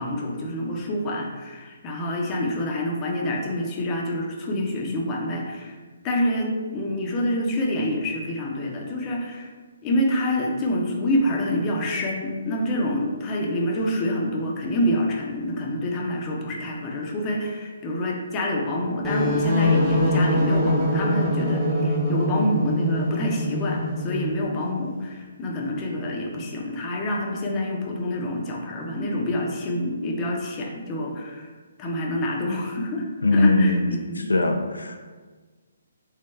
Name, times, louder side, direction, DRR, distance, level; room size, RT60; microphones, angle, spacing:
voice 1, 0.0-5.8 6.0-9.5 9.8-31.5 31.8-33.1 33.3-34.3, left 1 dB, 20° left, -1 dB, 0.6 m, -27 dB
sound 1, 19.0-24.5, left 1 dB, 15° right, 1.0 m, -23 dB
voice 2, 33.2-33.8 34.3-35.1, left 2 dB, 75° left, 4 dB, 0.3 m, -20 dB
3.6 x 3.1 x 3.2 m, 1.4 s
figure-of-eight pair, 135°, 0 cm